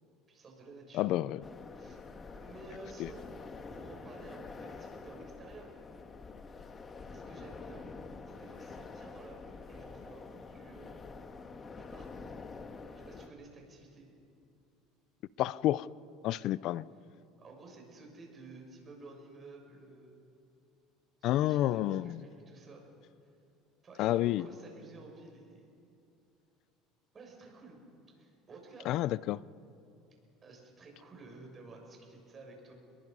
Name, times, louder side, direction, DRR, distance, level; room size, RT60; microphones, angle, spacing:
voice 1, 0.3-1.2 1.7-3.2 3.7-5.7 7.1-7.9 8.2-11.0 11.7-12.3 12.9-14.1 17.4-20.2 21.2-22.8 23.8-25.7 27.1-27.8 28.1-28.9 30.4-32.7, right 3 dB, 30° right, 6.7 m, -52 dB
voice 2, 0.9-1.4 3.0-3.1 15.4-15.9 16.2-16.8 21.2-22.2 24.0-24.5 28.9-29.4, left 14 dB, 60° left, 0.5 m, -29 dB
sound 1, 1.4-13.3, left 4 dB, 30° left, 1.7 m, -47 dB
29.0 x 22.0 x 5.5 m
supercardioid pair, 115°, 0 cm